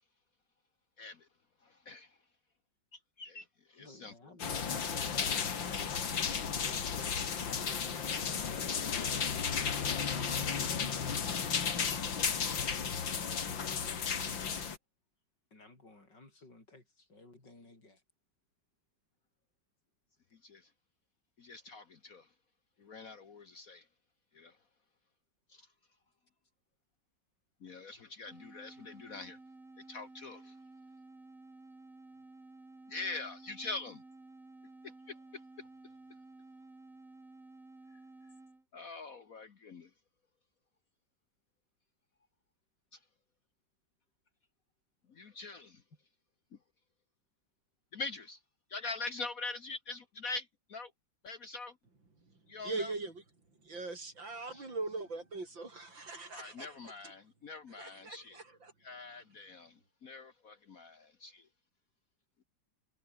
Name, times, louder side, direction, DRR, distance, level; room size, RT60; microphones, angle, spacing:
voice 1, 1.0-1.3 1.6-2.2 2.9-4.3 20.4-20.7 21.4-22.3 22.8-23.9 24.3-24.6 25.5-25.7 27.6-29.4 29.9-30.5 32.9-34.0 34.8-35.2 35.6-35.7 38.7-39.9 42.9-43.0 45.1-45.8 47.9-48.4 48.7-50.9 51.2-51.8 52.5-52.9 54.5-54.7 56.3-58.4 58.8-61.5, left 3 dB, 50° left, 1.6 m, -44 dB
voice 2, 3.8-8.2 9.9-11.1 15.5-18.0, left 2 dB, 65° left, 6.9 m, -55 dB
sound 1, 4.4-14.8, left 6 dB, 80° left, 2.9 m, -34 dB
sound 2, 28.3-38.6, right 2 dB, 45° right, 5.3 m, -54 dB
voice 3, 52.6-53.2 53.6-56.8 57.0-57.1 57.8-58.7, right 3 dB, 80° right, 6.3 m, -41 dB
omnidirectional pair, 2.0 m